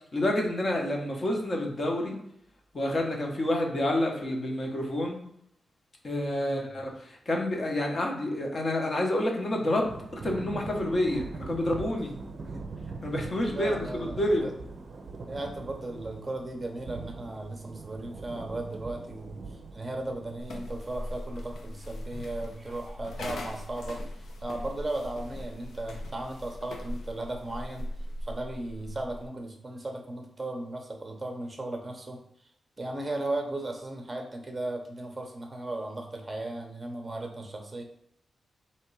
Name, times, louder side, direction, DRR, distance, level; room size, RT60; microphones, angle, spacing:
voice 1, 0.1-2.2 2.7-5.2 6.0-12.2 13.0-14.5, left 1 dB, 35° left, 1 dB, 0.9 m, -28 dB
Thunder / Rain, 9.8-20.4, right 4 dB, 50° right, 0.5 m, -41 dB
voice 2, 13.5-14.1 14.4-14.5 15.3-24.0 24.4-27.9 28.2-32.2 32.8-37.8, right 2 dB, 20° right, 3 dB, 0.8 m, -36 dB
sound 1, 20.4-29.3, left 1 dB, 75° left, 0.6 m, -40 dB
3.5 x 3.0 x 4.6 m, 0.72 s
wide cardioid pair, 160°, 0 cm